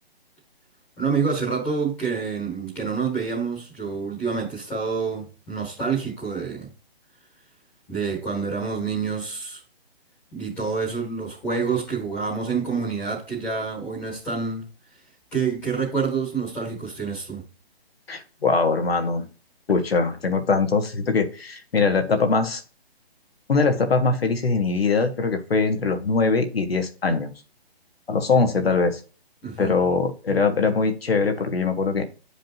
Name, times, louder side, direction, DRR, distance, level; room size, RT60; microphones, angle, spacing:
voice 1, 1.0-6.7 7.9-9.6 10.3-14.6 15.3-17.4 29.4-29.8, right 5 dB, 5° left, 1.5 m, -27 dB
voice 2, 18.1-19.2 19.7-22.6 23.5-27.3 28.1-29.0 29.6-32.0, left 4 dB, 70° left, 1.7 m, -22 dB
9.4 x 5.1 x 2.9 m
hypercardioid pair, 175°, 31 cm